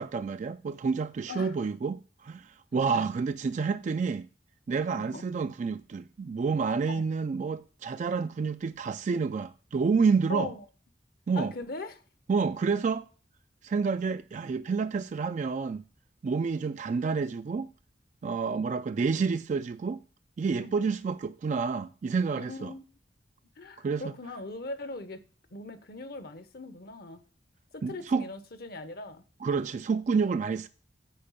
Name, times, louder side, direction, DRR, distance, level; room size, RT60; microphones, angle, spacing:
voice 1, 0.0-4.3 4.7-10.5 11.3-11.5 12.3-13.1 13.6-15.8 16.2-17.7 18.2-20.0 20.4-22.7 23.8-24.1 27.8-28.2 29.4-30.7, right 5 dB, 45° right, 0.3 m, -29 dB
voice 2, 2.7-3.0 4.9-5.2 6.9-7.1 10.3-10.6 11.4-12.0 18.4-18.6 20.6-20.8 22.4-22.8 23.6-25.2 25.5-27.2 27.7-29.2, left 2 dB, 60° left, 0.9 m, -40 dB
8.7 x 4.5 x 5.6 m
head